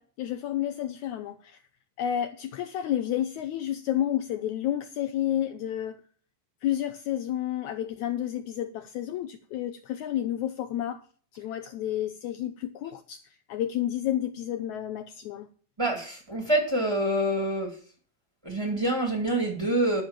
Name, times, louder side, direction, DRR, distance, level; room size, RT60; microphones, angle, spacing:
voice 1, 0.0-1.6 2.0-6.0 6.6-11.0 11.3-15.5, left 11 dB, 80° left, 1.7 m, -30 dB
voice 2, 15.8-17.8 18.4-20.0, right 1 dB, 10° right, 1.6 m, -26 dB
11.5 x 6.9 x 7.3 m
omnidirectional pair, 4.2 m